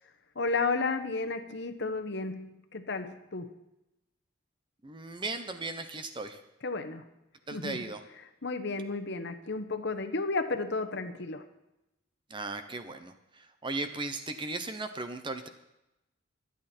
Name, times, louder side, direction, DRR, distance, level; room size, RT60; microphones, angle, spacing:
voice 1, 0.3-3.5 6.6-7.0 7.5-7.8 8.4-11.4, left 3 dB, 60° left, 8 dB, 1.2 m, -32 dB
voice 2, 4.8-6.4 7.5-8.0 12.3-15.5, right 2 dB, 25° right, 8 dB, 0.9 m, -37 dB
23.5 x 9.0 x 4.4 m, 0.90 s
head